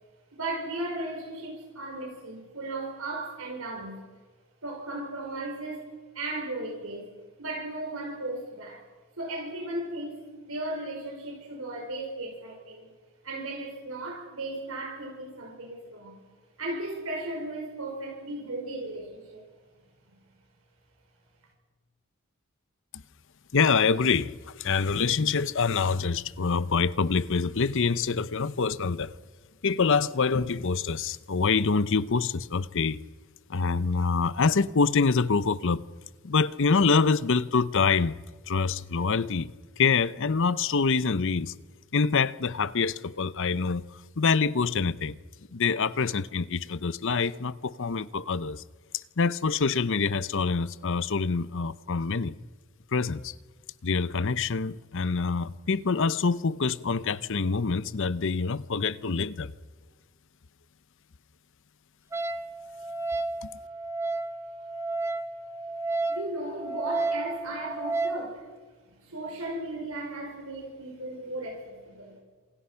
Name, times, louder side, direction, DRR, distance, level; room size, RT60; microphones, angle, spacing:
voice 1, 0.3-4.0 4.6-7.1 7.4-8.8 9.2-12.9 13.2-16.2 16.6-19.4 66.1-68.5 68.8-72.2, right 2 dB, 70° right, 5.3 m, -36 dB
voice 2, 23.5-29.1 29.6-33.0 33.5-35.8 36.2-38.1 38.5-39.5 39.8-41.5 41.9-43.8 44.2-45.2 45.5-48.6 48.9-52.3 52.9-53.3 53.8-59.5 63.4-63.5, left 5 dB, 60° left, 0.8 m, -25 dB
Wind instrument woodwind instrument, 62.1-68.3, right 3 dB, 10° right, 0.9 m, -32 dB
27.5 x 27.5 x 5.8 m
head